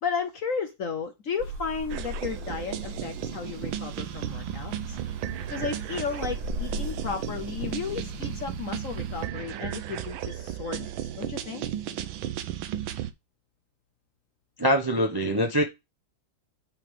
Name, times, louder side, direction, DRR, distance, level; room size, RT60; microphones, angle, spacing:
voice 1, 0.0-5.0 5.5-11.6, left 5 dB, 60° left, 0.9 m, -34 dB
sound 1, 1.4-9.3, equal, 70° right, 5.3 m, -39 dB
sound 2, 1.9-13.1, right 11 dB, 90° right, 1.5 m, -35 dB
voice 2, 14.6-15.6, equal, 35° right, 0.3 m, -23 dB
8.5 x 3.7 x 4.9 m
omnidirectional pair, 2.1 m